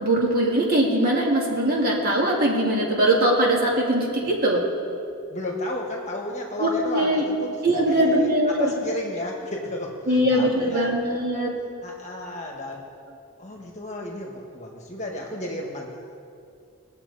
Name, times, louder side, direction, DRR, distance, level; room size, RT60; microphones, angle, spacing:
voice 1, 0.0-4.6 6.6-7.2 7.6-8.7 10.1-11.5, right 1 dB, 40° right, -3 dB, 2.2 m, -21 dB
voice 2, 5.3-10.9 11.8-12.8 13.4-15.9, left 1 dB, 30° left, -1 dB, 1.5 m, -33 dB
21.0 x 7.4 x 4.1 m, 2.5 s
head